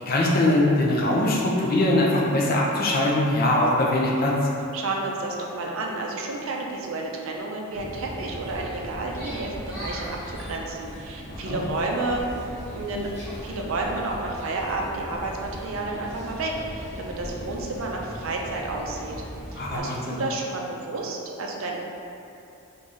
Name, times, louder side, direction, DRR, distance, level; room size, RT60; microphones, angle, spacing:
voice 1, 0.1-4.3 11.3-11.6 19.6-20.2, left 1 dB, 40° left, -3 dB, 0.5 m, -22 dB
voice 2, 4.7-12.3 12.7-13.1 13.4-19.2 19.5-21.8, right 2 dB, 65° right, 0 dB, 0.4 m, -31 dB
sound 1, 7.7-19.8, equal, 10° left, 1.1 m, -38 dB
3.7 x 2.6 x 3.1 m, 2.7 s
head